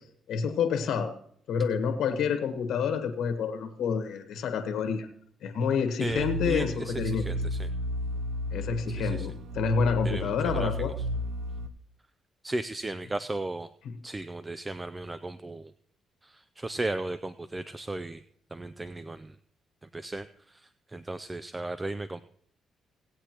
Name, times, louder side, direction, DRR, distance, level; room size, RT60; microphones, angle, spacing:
voice 1, 0.3-1.1 1.5-5.1 5.4-7.2 8.5-10.9, left 6 dB, 80° left, 8 dB, 1.3 m, -28 dB
voice 2, 6.0-7.7 8.9-9.3 10.0-10.7 12.4-13.7 14.0-15.7 16.2-18.2 18.5-19.4 19.9-22.2, right 2 dB, 20° right, 13 dB, 0.4 m, -36 dB
sound 1, 6.1-11.7, equal, 90° right, 0.7 m, -33 dB
18.5 x 8.4 x 3.0 m, 0.63 s
cardioid pair, 90°, 0 cm